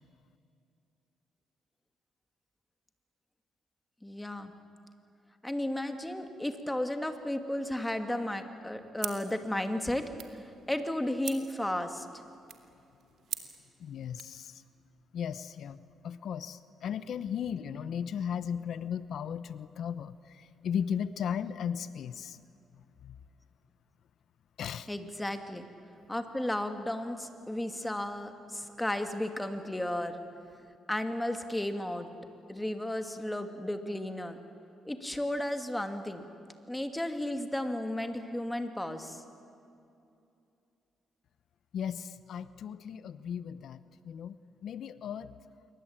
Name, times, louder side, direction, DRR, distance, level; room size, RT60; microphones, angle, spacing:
voice 1, 4.0-4.5 5.4-10.1 10.3-12.1 24.9-25.7 26.1-30.2 30.9-32.1 32.5-34.4 34.8-36.2 36.7-39.2, left 1 dB, 10° left, 6 dB, 2.5 m, -34 dB
sound 1, 9.0-14.4, right 9 dB, 70° right, 2.4 m, -45 dB
voice 2, 13.8-14.6 15.1-15.8 16.0-22.4 23.0-23.2 24.6-24.9 41.7-43.8 44.0-45.3, left 8 dB, 65° left, 14 dB, 0.9 m, -36 dB
27.5 x 23.5 x 8.9 m, 2.6 s
cardioid pair, 90°, 0 cm